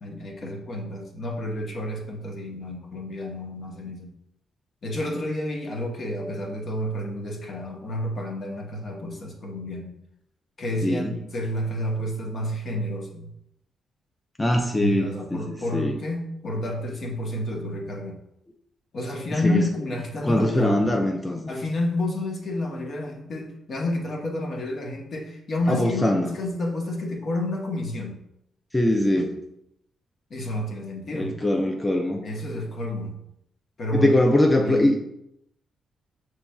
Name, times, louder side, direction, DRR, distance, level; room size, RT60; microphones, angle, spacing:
voice 1, 0.0-4.1 4.8-9.9 10.6-13.3 14.8-18.2 18.9-20.9 21.5-28.2 30.3-31.3 32.2-33.2 33.8-34.2 34.6-35.0, left 1 dB, 55° left, 1 dB, 1.0 m, -30 dB
voice 2, 10.8-11.2 14.4-16.0 19.3-19.7 20.2-21.4 25.7-26.4 28.7-29.4 31.1-32.2 33.9-35.0, left 1 dB, 20° left, 2 dB, 0.5 m, -22 dB
5.8 x 3.1 x 2.3 m, 0.78 s
supercardioid pair, 60°, 0 cm